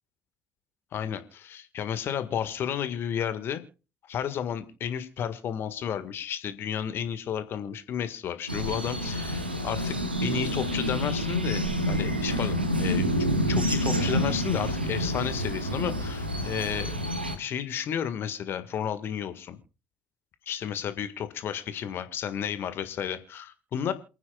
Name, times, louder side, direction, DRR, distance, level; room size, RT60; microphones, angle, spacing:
voice 1, 0.9-3.6 4.1-10.0 10.2-13.1 13.5-17.0 17.4-19.6 20.4-23.9, left 9 dB, 45° left, 11 dB, 1.7 m, -32 dB
sound 1, 8.5-17.4, equal, 90° right, 1.3 m, -28 dB
28.0 x 9.6 x 2.4 m, 0.33 s
figure-of-eight pair, 55°, 5 cm